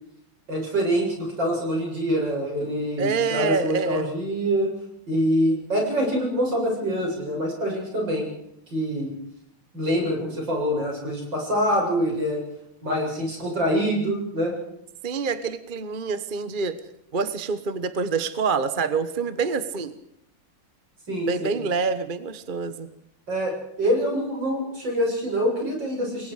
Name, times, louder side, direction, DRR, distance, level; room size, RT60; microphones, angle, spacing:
voice 1, 0.5-4.7 5.1-8.2 8.7-9.1 9.7-12.4 12.8-14.6 21.1-21.5 23.3-26.3, equal, 55° right, 0 dB, 8.4 m, -25 dB
voice 2, 3.0-4.1 15.0-16.8 17.1-19.9 21.3-22.9, right 5 dB, 35° right, 11 dB, 0.9 m, -26 dB
29.0 x 22.5 x 4.9 m, 0.75 s
omnidirectional pair, 2.4 m